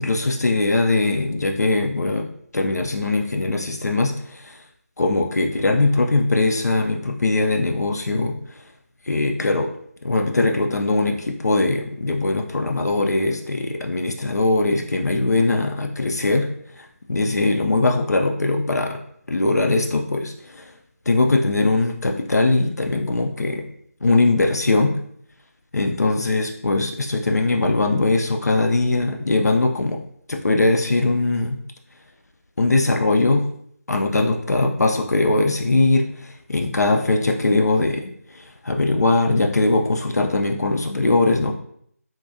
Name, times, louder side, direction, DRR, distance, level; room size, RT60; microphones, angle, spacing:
voice 1, 0.0-4.6 5.0-8.4 9.1-9.7 10.0-16.5 16.7-19.0 19.3-20.7 21.1-23.6 24.0-25.0 25.7-30.0 30.3-31.6 32.6-33.5 33.9-41.5, left 2 dB, 80° left, 3 dB, 0.4 m, -21 dB
3.7 x 2.6 x 2.3 m, 0.67 s
figure-of-eight pair, 165°, 9 cm